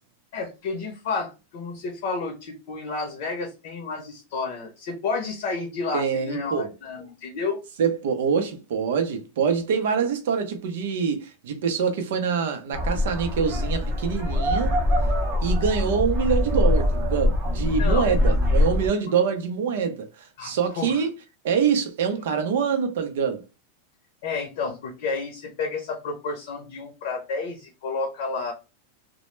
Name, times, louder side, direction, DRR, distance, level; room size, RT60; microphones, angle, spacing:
voice 1, 0.3-7.6 17.8-18.2 20.4-21.0 24.2-28.5, left 4 dB, 50° left, 0.6 m, -31 dB
voice 2, 5.9-6.7 7.8-14.7 15.4-21.1 21.4-23.4, right 6 dB, 70° right, 0.6 m, -25 dB
sound 1, 12.7-18.9, left 1 dB, 25° right, 0.6 m, -23 dB
2.1 x 2.1 x 3.0 m
supercardioid pair, 170°, 0 cm